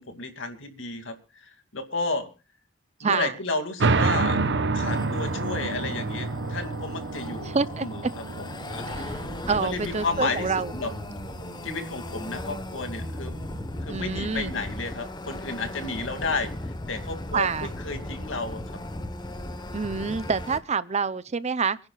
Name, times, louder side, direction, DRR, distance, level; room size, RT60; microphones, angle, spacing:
voice 1, 0.0-2.3 3.0-4.4 4.7-7.5 7.8-8.1 8.4-9.1 9.4-10.9 11.6-13.3 13.8-18.6 18.9-19.0, left 3 dB, 65° left, 2.5 m, -32 dB
voice 2, 3.0-3.3 7.4-7.9 8.9-10.7 13.9-14.5 17.3-17.7 19.7-21.8, right 5 dB, 35° right, 0.6 m, -27 dB
sound 1, 3.8-14.9, right 3 dB, 60° right, 0.9 m, -30 dB
sound 2, 4.8-20.6, left 1 dB, 20° left, 1.1 m, -37 dB
27.5 x 10.5 x 2.4 m
head